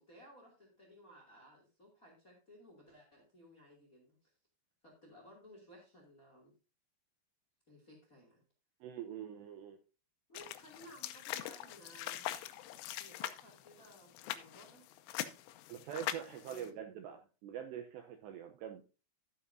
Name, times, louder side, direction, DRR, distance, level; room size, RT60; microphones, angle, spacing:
voice 1, 0.0-4.3 4.8-6.5 7.7-8.4 10.3-12.6 13.0-14.9 16.2-16.7, equal, 30° left, -1 dB, 1.7 m, -59 dB
voice 2, 8.8-9.8 15.7-18.8, right 9 dB, 80° right, 6 dB, 2.6 m, -44 dB
sound 1, 10.3-16.7, left 13 dB, 80° left, 3.1 m, -43 dB
12.5 x 9.0 x 2.7 m, 0.33 s
omnidirectional pair, 5.7 m